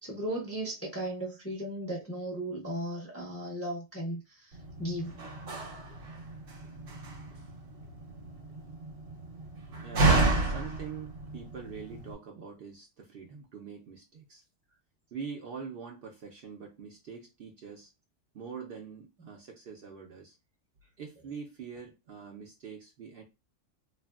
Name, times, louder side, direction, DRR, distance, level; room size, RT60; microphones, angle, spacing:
voice 1, 0.0-5.2, right 1 dB, 15° left, 0.5 m, -36 dB
Slam, 4.5-12.1, right 3 dB, 80° right, 1.1 m, -31 dB
voice 2, 9.8-14.4 15.1-17.9 18.3-20.4 21.0-23.2, right 6 dB, 60° right, 0.7 m, -44 dB
2.9 x 2.4 x 2.3 m
omnidirectional pair, 1.3 m